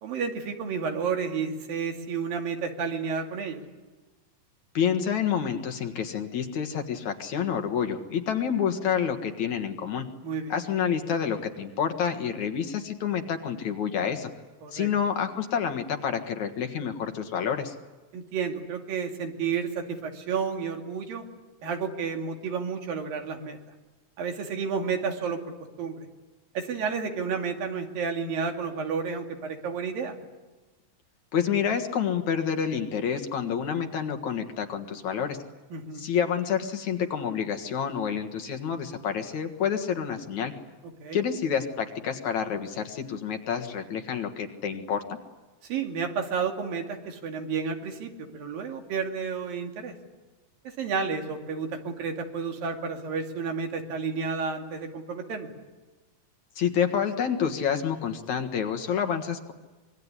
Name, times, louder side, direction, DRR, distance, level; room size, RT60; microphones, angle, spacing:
voice 1, 0.0-3.6 10.2-10.5 14.6-14.9 18.1-21.2 21.6-23.6 24.2-26.0 26.5-30.2 35.7-36.0 41.0-41.2 45.7-50.0 50.8-55.5, right 5 dB, 80° right, 3 dB, 4.2 m, -31 dB
voice 2, 4.7-10.1 10.5-14.3 14.7-17.7 31.3-35.4 36.0-40.6 41.1-45.0 56.6-59.5, left 7 dB, 60° left, 6 dB, 2.8 m, -28 dB
25.5 x 23.0 x 9.9 m, 1.2 s
omnidirectional pair, 4.0 m